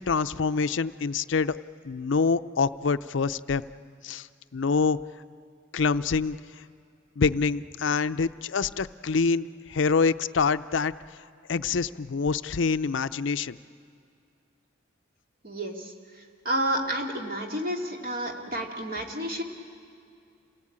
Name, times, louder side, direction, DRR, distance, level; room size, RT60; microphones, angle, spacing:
voice 1, 0.0-1.6 1.8-3.7 4.0-4.3 4.5-5.0 5.7-6.4 7.2-10.9 11.5-13.6, left 5 dB, 65° left, 13 dB, 0.5 m, -26 dB
voice 2, 15.4-15.9 16.4-19.4, right 1 dB, 45° right, 2 dB, 2.6 m, -30 dB
28.0 x 18.5 x 8.8 m, 2.4 s
head